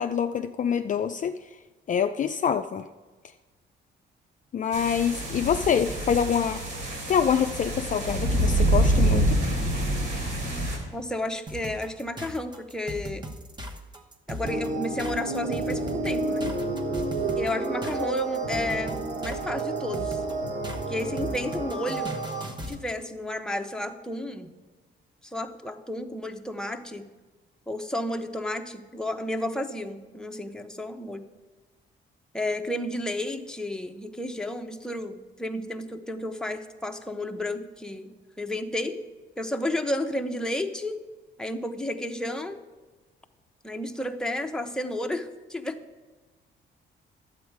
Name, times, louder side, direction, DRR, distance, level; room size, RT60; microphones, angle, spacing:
voice 1, 0.0-1.3 1.9-2.8 4.5-6.6 7.1-9.4, left 7 dB, 40° left, 7 dB, 0.4 m, -25 dB
sound 1, 4.7-10.8, right 1 dB, 75° right, 3.2 m, -26 dB
voice 2, 10.9-13.3 14.3-16.5 17.4-20.2 20.9-22.1 22.7-24.5 25.2-27.0 27.7-31.2 32.3-39.0 39.4-41.0 41.4-42.6 43.6-45.8, left 1 dB, 5° left, 5 dB, 0.8 m, -32 dB
sound 2, 11.5-22.8, equal, 20° right, 1.1 m, -38 dB
sound 3, 14.4-22.4, right 2 dB, 55° right, 3.0 m, -30 dB
11.0 x 8.1 x 4.7 m, 1.3 s
cardioid pair, 90°, 20 cm